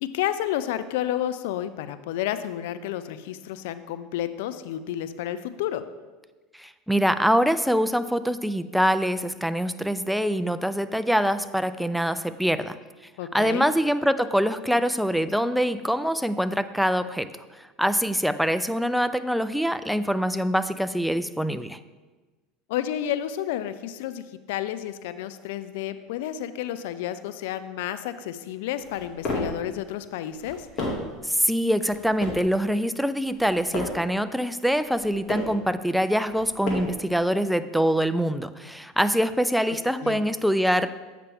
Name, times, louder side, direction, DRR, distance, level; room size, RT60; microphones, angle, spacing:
voice 1, 0.0-5.8 13.2-13.7 22.7-30.7 39.7-40.2, left 11 dB, 70° left, 12 dB, 0.4 m, -31 dB
voice 2, 6.6-12.8 13.3-17.3 17.6-21.8 31.2-40.9, equal, ahead, 12 dB, 0.4 m, -24 dB
sound 1, 28.8-29.6 30.3-31.2 31.8-32.5 33.2-34.1 34.8-35.6 36.3-37.1, left 2 dB, 50° left, 2.0 m, -33 dB
8.2 x 5.8 x 3.5 m, 1.3 s
hypercardioid pair, 80°, 0 cm